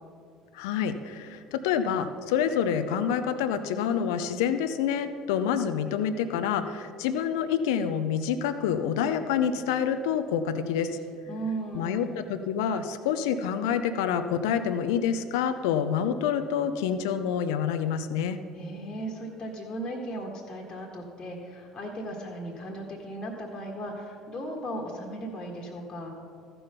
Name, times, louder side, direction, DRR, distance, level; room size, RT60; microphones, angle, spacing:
voice 1, 0.5-10.9 11.7-18.4, left 8 dB, 75° left, 9 dB, 0.6 m, -27 dB
voice 2, 11.3-12.2 18.5-26.1, right 1 dB, 40° left, -1 dB, 1.5 m, -36 dB
14.0 x 5.4 x 5.7 m, 2.4 s
hypercardioid pair, 60°, 2 cm